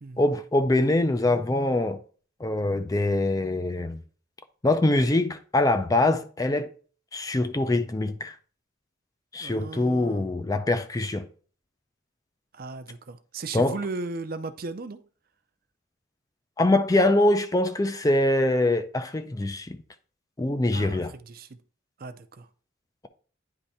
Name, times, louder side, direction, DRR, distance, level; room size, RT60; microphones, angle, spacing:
voice 1, 0.2-2.0 2.4-4.0 4.6-6.7 7.1-8.4 9.3-11.2 13.5-13.8 16.6-19.8 20.4-21.1, left 2 dB, 20° left, 0.4 m, -23 dB
voice 2, 9.4-10.3 12.5-15.0 20.7-21.6 22.0-22.5, right 3 dB, 45° right, 0.5 m, -36 dB
9.8 x 3.3 x 4.2 m
head